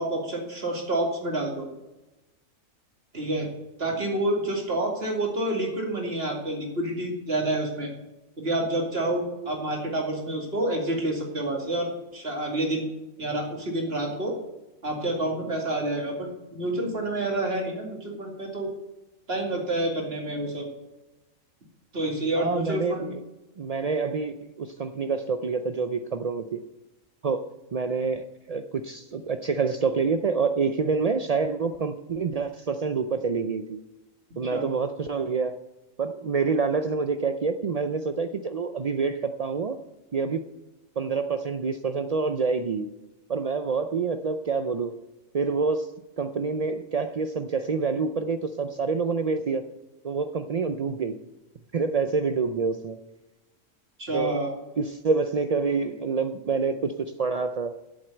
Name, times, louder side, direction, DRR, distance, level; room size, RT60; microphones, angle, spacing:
voice 1, 0.0-1.7 3.1-3.5 3.8-7.9 8.4-12.9 13.2-14.3 14.8-18.7 19.3-20.7 21.9-23.2 34.5-34.7 54.0-54.5, right 1 dB, 45° right, 0 dB, 2.6 m, -28 dB
voice 2, 22.4-23.2 23.6-26.6 27.2-27.4 27.7-33.8 34.4-35.5 36.0-39.8 40.1-40.4 41.0-42.9 43.3-44.9 45.3-45.9 46.2-49.6 50.0-51.2 51.7-53.0 54.1-54.4 54.8-57.7, right 4 dB, 85° right, 8 dB, 0.3 m, -27 dB
8.2 x 7.7 x 8.9 m, 1.0 s
omnidirectional pair, 1.4 m